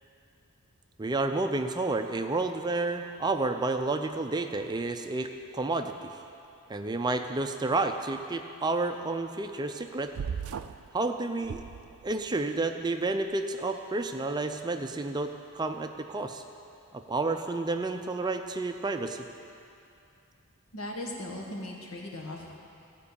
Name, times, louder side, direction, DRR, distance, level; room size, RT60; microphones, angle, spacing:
voice 1, 1.0-6.2 6.7-10.1 10.9-11.6 12.0-16.4 16.9-19.2, right 3 dB, 20° right, 6 dB, 0.4 m, -30 dB
sound 1, 10.1-10.9 11.4-12.3, right 7 dB, 80° right, 0.4 m, -37 dB
voice 2, 20.7-22.6, left 1 dB, 80° left, -1 dB, 1.8 m, -38 dB
15.0 x 5.3 x 8.5 m, 2.6 s
head